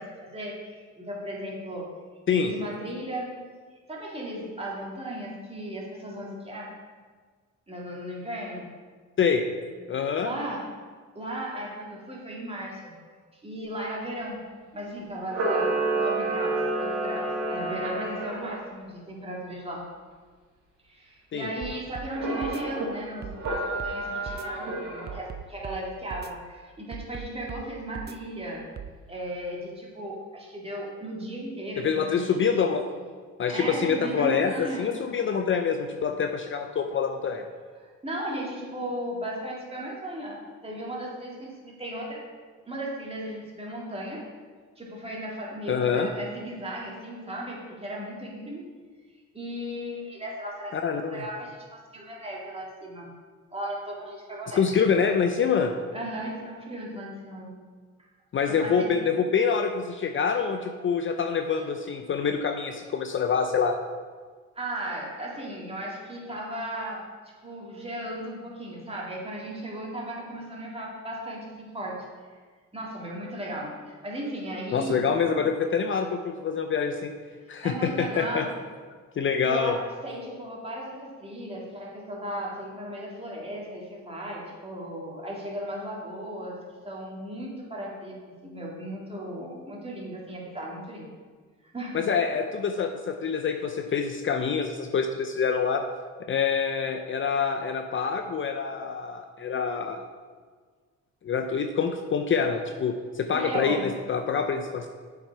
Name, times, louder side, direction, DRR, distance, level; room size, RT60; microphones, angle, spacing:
voice 1, 0.0-2.0 2.3-3.4 3.7-6.8 7.7-8.7 10.2-10.8 11.1-12.9 13.3-14.4 14.7-19.9 20.8-28.7 29.1-32.4 33.5-34.9 37.8-42.3 42.7-44.3 44.8-48.7 49.3-50.8 51.1-53.1 53.5-54.8 55.9-57.6 58.5-58.9 64.6-67.1 67.4-72.1 72.7-75.5 77.6-78.6 79.1-91.1 91.6-92.0 103.3-103.9, right 1 dB, 20° right, -3 dB, 2.1 m, -36 dB
voice 2, 9.9-10.3 21.3-21.5 31.8-32.9 33.4-37.4 45.7-46.1 50.7-51.2 54.5-55.7 58.3-63.7 74.7-77.1 77.5-78.5 79.2-79.7 91.9-95.9 96.3-100.0 101.2-104.9, left 6 dB, 40° left, 6 dB, 0.5 m, -26 dB
Camera, 15.2-18.5 22.1-22.9 23.4-25.2, right 2 dB, 90° right, 2.4 m, -29 dB
sound 1, 21.6-22.1 22.4-22.6 23.2-24.0 24.3-24.5 25.1-25.8 26.1-26.3 26.9-27.6 27.9-28.2 28.8-28.9, right 8 dB, 35° right, 0.4 m, -39 dB
7.1 x 5.7 x 4.6 m, 1.5 s
cardioid pair, 90°, 30 cm